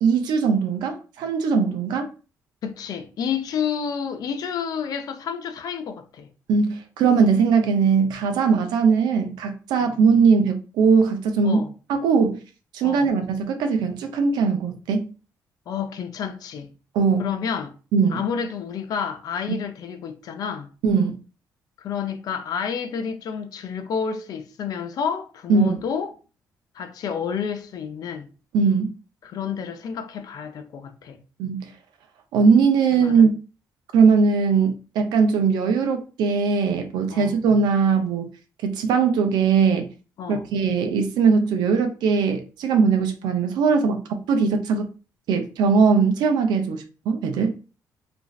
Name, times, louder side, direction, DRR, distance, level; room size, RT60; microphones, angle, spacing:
voice 1, 0.0-2.1 6.5-11.6 11.9-12.4 12.7-15.1 16.9-17.2 17.9-18.2 20.8-21.2 25.5-25.8 28.5-28.9 31.4-31.6 32.3-33.3 33.9-38.3 38.6-39.9 40.3-44.9 45.3-47.5, right 5 dB, 85° right, 0.5 m, -20 dB
voice 2, 2.6-6.3 9.9-10.0 11.4-11.7 12.8-13.1 15.7-16.7 17.2-17.7 18.1-20.7 21.8-26.1 26.7-28.3 29.2-31.2 33.0-33.2 37.1-37.4 40.2-40.4, left 7 dB, 60° left, 0.5 m, -30 dB
2.5 x 2.3 x 3.1 m
cardioid pair, 105°, 7 cm